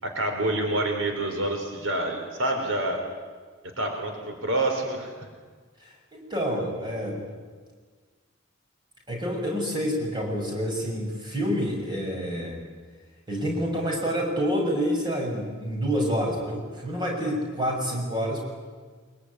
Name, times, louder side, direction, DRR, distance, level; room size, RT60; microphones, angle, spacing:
voice 1, 0.0-3.0 3.6-5.1, right 1 dB, 75° right, 3 dB, 4.1 m, -27 dB
voice 2, 5.8-7.2 9.1-12.6 13.3-18.4, equal, 20° right, -1 dB, 6.7 m, -28 dB
24.0 x 22.5 x 9.8 m, 1.5 s
head